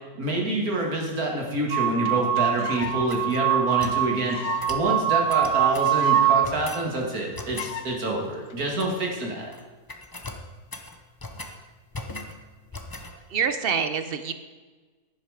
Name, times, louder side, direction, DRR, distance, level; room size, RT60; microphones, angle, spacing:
voice 1, 0.2-4.4 4.7-9.5, right 2 dB, 65° right, 0 dB, 2.5 m, -27 dB
sound 1, 1.7-1.8 2.0-2.1 2.4-3.0 3.3-3.4 3.7-3.8 4.2-4.7 5.0-5.1 5.4-5.5 5.7-6.4 6.7-6.8 6.9-7.2 7.6-7.9 8.5-8.8, left 9 dB, 65° left, 1.1 m, -35 dB
sound 2, 1.7-6.5, right 11 dB, 85° right, 1.5 m, -24 dB
sound 3, 2.8-4.0 4.6-4.9 5.3-6.0 6.4-6.9 7.3-7.8 8.6-9.2 9.4-9.6 9.9-11.6 11.9-12.4 12.7-13.1, left 2 dB, 20° left, 0.6 m, -39 dB
voice 2, 13.1-14.3, right 6 dB, 50° right, 10 dB, 0.8 m, -26 dB
10.5 x 10.5 x 5.0 m, 1.4 s
omnidirectional pair, 1.7 m